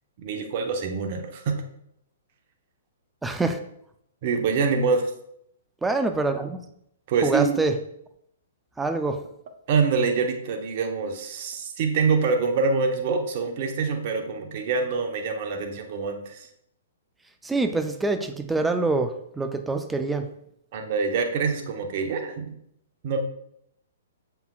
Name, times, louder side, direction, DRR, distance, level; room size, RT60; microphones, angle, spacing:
voice 1, 0.2-1.6 4.2-5.1 7.1-7.6 9.7-16.5 20.7-22.6 23.0-23.2, right 5 dB, 50° right, 5 dB, 0.9 m, -25 dB
voice 2, 3.2-3.6 5.8-6.6 7.2-7.7 8.8-9.2 17.4-20.3, right 3 dB, 10° right, 7 dB, 0.5 m, -25 dB
7.1 x 5.8 x 2.4 m, 0.73 s
hypercardioid pair, 125°, 0 cm